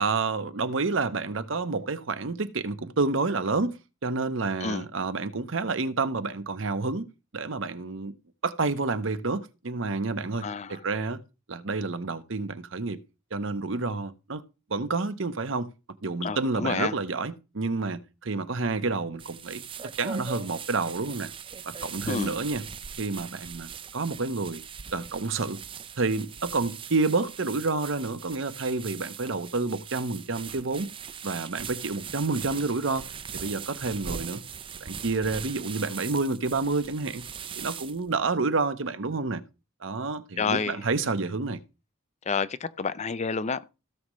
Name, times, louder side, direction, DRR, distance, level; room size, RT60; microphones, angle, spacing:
voice 1, 0.0-7.1 7.3-8.1 8.4-11.2 11.5-13.0 13.3-14.4 14.7-15.7 16.0-19.6 20.0-21.3 21.6-22.6 23.0-24.6 24.9-25.6 26.0-30.9 31.2-33.1 33.3-34.4 34.8-37.2 37.6-39.4 39.8-41.6, right 3 dB, 65° right, 0.9 m, -29 dB
voice 2, 10.4-10.8 16.2-16.9 22.1-22.4 40.4-40.8 42.3-43.7, left 5 dB, 35° left, 0.5 m, -29 dB
sound 1, 19.2-38.1, right 7 dB, 25° right, 0.4 m, -41 dB
16.5 x 6.4 x 3.1 m
head